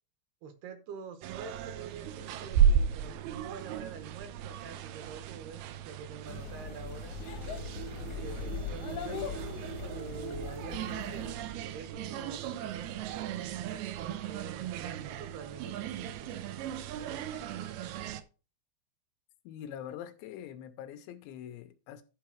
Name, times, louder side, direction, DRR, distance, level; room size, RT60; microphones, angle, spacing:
voice 1, 0.4-7.2 8.2-9.6 9.9-11.4 11.6-17.9, right 6 dB, 70° right, 2.7 m, -47 dB
sound 1, 1.2-18.2, right 8 dB, 90° right, 2.1 m, -35 dB
sound 2, 6.3-11.3, left 7 dB, 65° left, 2.0 m, -40 dB
voice 2, 19.4-22.0, left 10 dB, 85° left, 3.0 m, -44 dB
11.0 x 4.7 x 4.6 m
omnidirectional pair, 5.2 m